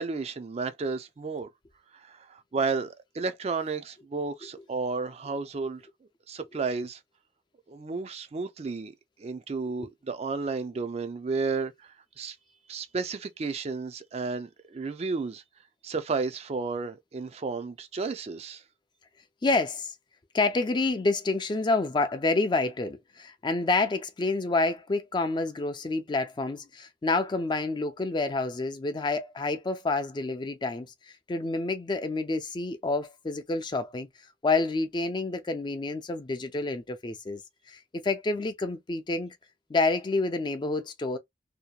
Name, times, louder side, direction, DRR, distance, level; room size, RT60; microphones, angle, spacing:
voice 1, 0.0-1.5 1.9-5.8 6.3-7.0 7.7-8.9 9.2-12.4 12.7-15.4 15.8-18.6, right 4 dB, 35° right, 0.4 m, -32 dB
voice 2, 19.4-19.9 20.3-34.1 34.4-37.4 37.7-39.4 39.7-41.2, left 3 dB, 25° left, 0.4 m, -28 dB
2.8 x 2.2 x 2.3 m
head